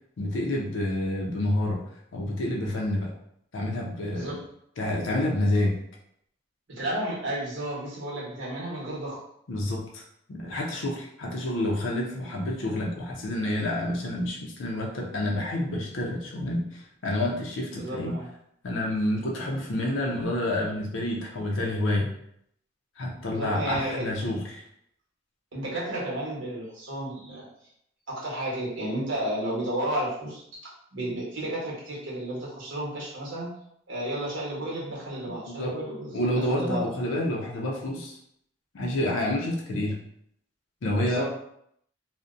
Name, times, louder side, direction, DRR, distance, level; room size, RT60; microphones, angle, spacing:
voice 1, 0.2-1.8 2.1-3.1 3.5-4.4 4.8-5.8 9.5-10.0 10.3-18.2 18.6-22.1 23.0-24.6 35.5-35.7 36.1-38.2 38.7-39.9 40.8-41.2, left 1 dB, 80° left, -1 dB, 0.5 m, -28 dB
voice 2, 6.7-9.2 17.7-18.3 23.3-24.1 25.5-27.4 28.1-30.4 30.9-33.5 33.9-36.8 41.0-41.2, right 1 dB, 75° right, -5 dB, 0.9 m, -32 dB
2.5 x 2.0 x 2.4 m, 0.72 s
head